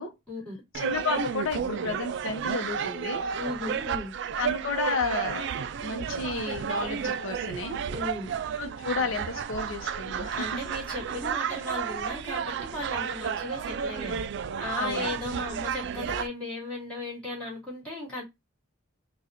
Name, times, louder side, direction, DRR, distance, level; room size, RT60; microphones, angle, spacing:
voice 1, 0.7-3.3 4.4-5.5 5.8-7.8 8.6-10.6 14.8-15.1, left 3 dB, 85° left, 0.7 m, -32 dB
sound 1, 0.7-16.3, right 7 dB, 60° right, 0.3 m, -32 dB
voice 2, 3.4-4.1 7.9-8.3 10.3-14.2 14.6-18.2, left 2 dB, 5° left, 2.4 m, -36 dB
4.1 x 2.3 x 2.5 m
head